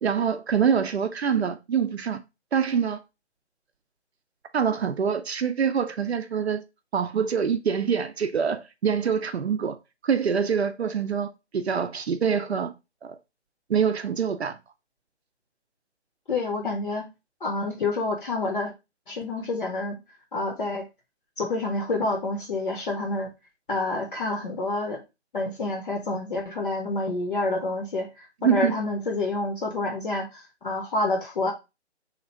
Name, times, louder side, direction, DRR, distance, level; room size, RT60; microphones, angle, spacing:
voice 1, 0.0-2.2 2.5-3.0 4.5-6.6 6.9-9.8 10.0-12.7 13.0-13.2 13.7-14.6 28.4-28.7, right 7 dB, 65° right, 0.5 m, -25 dB
voice 2, 16.3-17.1 17.4-18.7 19.1-20.0 20.3-20.9 21.4-23.3 23.7-25.0 25.3-31.5, left 2 dB, 45° left, 0.7 m, -28 dB
2.9 x 2.5 x 4.1 m
figure-of-eight pair, 155°, 35 cm